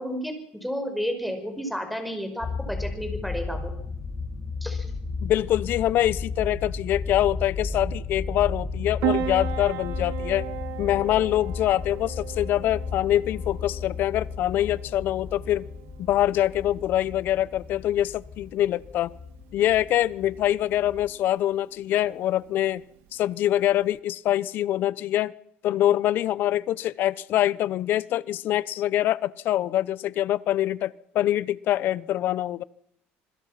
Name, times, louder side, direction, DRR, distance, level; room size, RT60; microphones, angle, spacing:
voice 1, 0.0-3.7 4.6-4.9, equal, ahead, 5 dB, 5.5 m, -32 dB
sound 1, 2.4-21.1, left 4 dB, 25° left, 2.6 m, -34 dB
voice 2, 5.2-10.5 10.8-15.7 16.0-19.1 19.5-22.8 23.1-25.3 25.6-32.6, left 13 dB, 50° left, 19 dB, 0.9 m, -24 dB
Piano, 9.0-24.0, right 11 dB, 70° right, 2.0 m, -37 dB
27.0 x 21.5 x 5.9 m, 0.74 s
cardioid pair, 150°, 4 cm